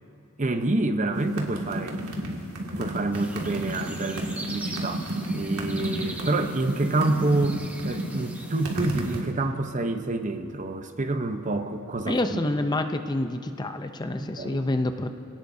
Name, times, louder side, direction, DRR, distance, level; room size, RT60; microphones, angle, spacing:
voice 1, 0.4-2.4 2.8-12.4 14.1-14.7, right 2 dB, 35° right, 7 dB, 0.8 m, -28 dB
sound 1, 1.2-9.3, right 1 dB, 80° right, 2.1 m, -31 dB
sound 2, 3.1-9.2, right 1 dB, 5° right, 1.0 m, -42 dB
voice 2, 12.1-15.1, left 2 dB, 20° left, 7 dB, 0.5 m, -27 dB
27.0 x 18.0 x 2.7 m, 2.7 s
head